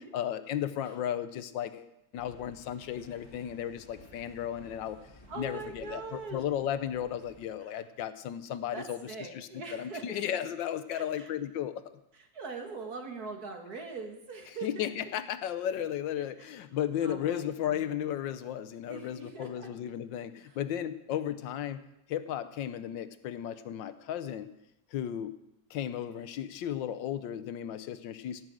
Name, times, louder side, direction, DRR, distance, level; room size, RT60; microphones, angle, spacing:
voice 1, 0.1-5.0 5.4-9.0 9.3-11.8 14.6-21.8 22.1-24.5 24.9-25.3 25.7-28.4, left 10 dB, 85° left, 12 dB, 1.4 m, -34 dB
sound 1, 2.1-7.5, left 1 dB, 15° left, 1.8 m, -55 dB
voice 2, 5.3-6.4 7.6-7.9 8.7-10.3 10.9-11.3 12.1-15.1 16.2-16.5 17.0-18.1 18.9-19.7 20.2-20.6, right 4 dB, 55° right, 4 dB, 2.1 m, -43 dB
17.0 x 6.3 x 7.6 m, 0.87 s
omnidirectional pair, 2.0 m